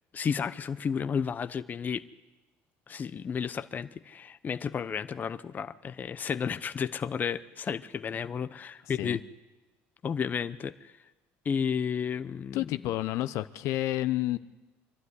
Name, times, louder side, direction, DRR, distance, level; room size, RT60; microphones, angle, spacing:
voice 1, 0.1-2.0 2.9-9.2 10.0-10.9 11.4-12.7, left 7 dB, 35° left, 12 dB, 0.8 m, -32 dB
voice 2, 12.5-14.4, left 15 dB, 70° left, 12 dB, 0.8 m, -30 dB
24.5 x 12.0 x 9.8 m, 1.1 s
supercardioid pair, 100°, 5 cm